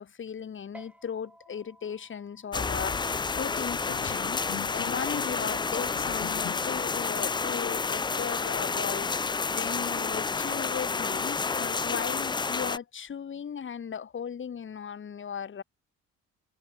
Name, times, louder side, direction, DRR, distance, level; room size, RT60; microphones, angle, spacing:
voice 1, 0.0-15.6, left 7 dB, 40° left, 1.5 m, -37 dB
sound 1, 0.7-7.5, right 1 dB, 5° right, 7.2 m, -58 dB
sound 2, 2.5-12.8, left 4 dB, 15° left, 0.3 m, -30 dB
Bowed string instrument, 3.9-6.9 7.3-7.5 7.9-8.0 8.2-10.1 10.4-11.3 11.9-12.5, left 14 dB, 75° left, 1.4 m, -45 dB
cardioid pair, 90°, 30 cm